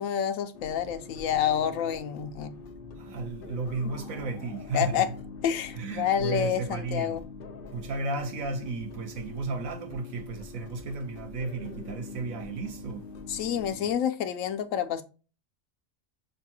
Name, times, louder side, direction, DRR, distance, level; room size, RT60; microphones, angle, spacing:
voice 1, 0.0-2.5 4.7-5.1 5.4-7.2 13.3-15.0, left 9 dB, 80° left, 1.0 m, -28 dB
sound 1, 0.5-13.9, left 4 dB, 55° left, 0.7 m, -44 dB
voice 2, 3.0-5.2 5.7-7.2 7.7-13.1, right 3 dB, 85° right, 1.3 m, -34 dB
6.5 x 2.3 x 2.8 m
omnidirectional pair, 1.4 m